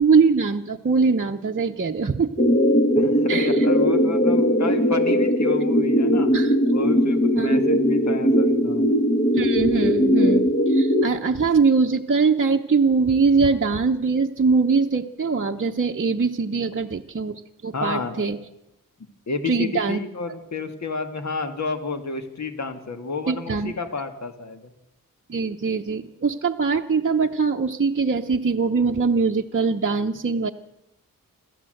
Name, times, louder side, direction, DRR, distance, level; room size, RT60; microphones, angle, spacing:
voice 1, 0.0-2.4 3.3-3.7 6.3-6.6 7.3-7.8 9.3-18.4 19.4-20.0 23.3-23.7 25.3-30.5, right 4 dB, 35° right, 1 dB, 0.8 m, -22 dB
sound 1, 2.4-11.1, equal, 30° left, 1.8 m, -19 dB
voice 2, 3.0-6.3 6.7-8.8 17.7-18.3 19.3-24.7, left 4 dB, 55° left, 7 dB, 2.0 m, -31 dB
27.5 x 13.5 x 7.8 m, 0.91 s
wide cardioid pair, 100°, 34 cm